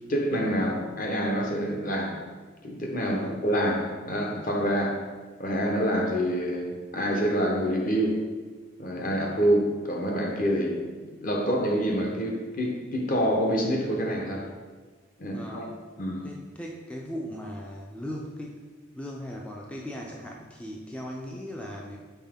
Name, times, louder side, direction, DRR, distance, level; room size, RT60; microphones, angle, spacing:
voice 1, 0.1-2.2 2.6-5.1 5.4-8.3 8.8-14.5 15.2-15.7 16.0-16.3, equal, 45° left, 0.9 m, -27 dB
voice 2, 3.0-3.3 15.3-15.8 16.2-18.6 18.9-22.0, equal, 5° left, 0.4 m, -38 dB
5.5 x 4.7 x 3.6 m
head